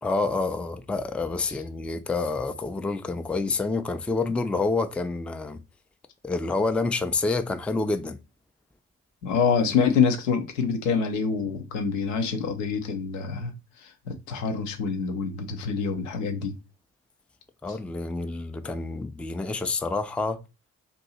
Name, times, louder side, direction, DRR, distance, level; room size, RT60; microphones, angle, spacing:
voice 1, 0.0-5.6 6.2-8.2 17.6-20.4, left 3 dB, 5° left, 0.4 m, -28 dB
voice 2, 9.2-13.5 13.8-16.5 17.7-17.8, left 5 dB, 80° left, 0.7 m, -26 dB
2.6 x 2.5 x 4.1 m
hypercardioid pair, 40°, 37 cm